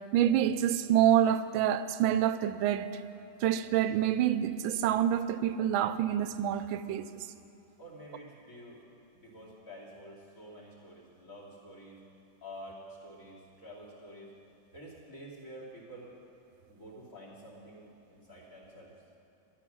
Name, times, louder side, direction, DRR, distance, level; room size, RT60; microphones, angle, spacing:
voice 1, 0.1-3.0 3.4-7.3, right 10 dB, 90° right, 1.4 m, -27 dB
voice 2, 7.8-8.8 9.1-12.0 12.4-14.3 14.7-16.1 16.7-18.9, equal, 45° left, 3.2 m, -49 dB
13.0 x 11.5 x 6.2 m
omnidirectional pair, 2.1 m